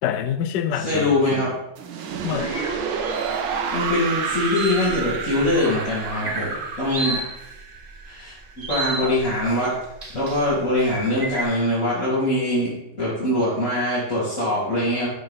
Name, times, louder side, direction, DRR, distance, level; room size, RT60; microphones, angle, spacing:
voice 1, 0.0-1.4 2.2-2.7 9.0-9.2, left 9 dB, 70° left, 10 dB, 1.1 m, -27 dB
voice 2, 0.7-1.5 3.7-7.2 8.1-9.7 10.1-12.7 13.0-15.1, left 1 dB, 35° left, -12 dB, 3.6 m, -23 dB
sound 1, 1.8-8.7, right 5 dB, 80° right, 1.7 m, -29 dB
sound 2, 2.3-11.4, right 2 dB, 30° right, 1.3 m, -33 dB
Bird vocalization bird call bird song, 2.3-2.8 4.1-4.5 5.0-5.1 5.3-6.5 6.8-7.4, equal, 55° right, 4.4 m, -38 dB
12.0 x 6.6 x 3.6 m, 0.88 s
omnidirectional pair, 2.3 m